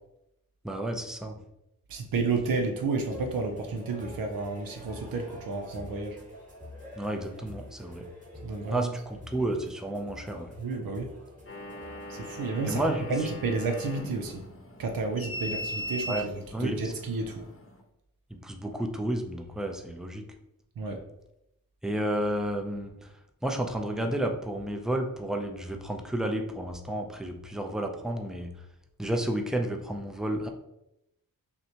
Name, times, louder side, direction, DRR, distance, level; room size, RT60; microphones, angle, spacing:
voice 1, 0.6-1.4 7.0-8.0 8.7-10.5 12.7-13.0 16.1-16.3 16.5-16.9 18.4-20.2 21.8-22.9 23.4-28.5 29.0-30.5, right 1 dB, ahead, 3 dB, 0.5 m, -31 dB
voice 2, 1.9-6.2 8.4-8.9 10.6-11.1 12.1-12.8 13.1-14.4 14.8-17.4 20.8-21.0, right 3 dB, 75° right, 4 dB, 0.6 m, -31 dB
sound 1, 3.1-14.5, left 1 dB, 20° right, 1.4 m, -47 dB
sound 2, 11.5-17.8, equal, 40° left, 0.8 m, -39 dB
5.7 x 2.2 x 2.8 m, 0.84 s
cardioid pair, 65°, 35 cm